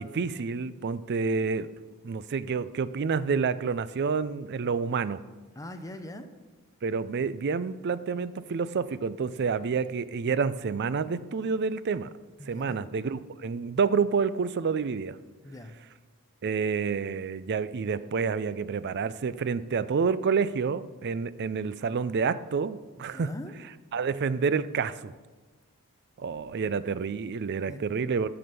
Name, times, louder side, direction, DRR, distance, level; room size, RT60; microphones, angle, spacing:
voice 1, 0.0-1.7 2.0-5.2 6.8-12.1 12.5-15.2 16.4-23.3 23.9-25.1 26.2-28.3, right 5 dB, 50° right, 16 dB, 0.4 m, -28 dB
voice 2, 5.6-6.3 12.4-12.9 15.4-15.8 23.1-23.5 27.7-27.8, left 1 dB, 15° left, 8 dB, 0.6 m, -41 dB
9.4 x 6.0 x 6.8 m, 1.3 s
head